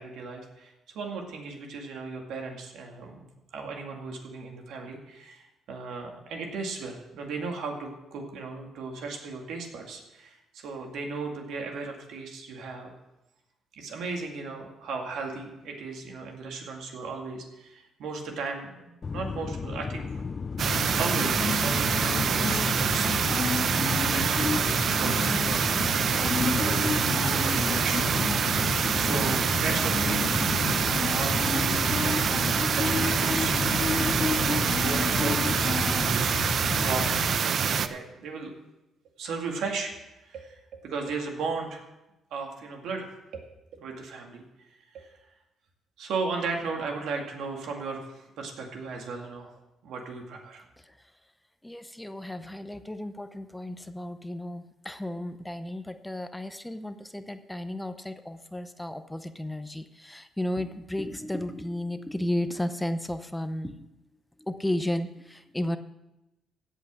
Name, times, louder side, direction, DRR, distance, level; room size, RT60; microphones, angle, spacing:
voice 1, 0.0-3.2 3.5-12.9 13.8-20.2 20.5-28.3 28.9-30.7 31.0-38.5 39.2-39.9 40.2-41.8 42.3-43.4 43.7-44.4 44.9-45.1 46.0-49.5 49.8-50.6, right 4 dB, 80° right, 2 dB, 2.2 m, -36 dB
sound 1, 19.0-37.4, left 5 dB, 35° left, 0.3 m, -31 dB
sound 2, 20.6-37.9, right 7 dB, 60° right, 0.6 m, -26 dB
voice 2, 50.8-51.1 51.6-63.9 64.4-65.8, left 1 dB, 10° left, 10 dB, 0.7 m, -33 dB
16.5 x 5.6 x 6.3 m, 0.96 s
cardioid pair, 90°, 0 cm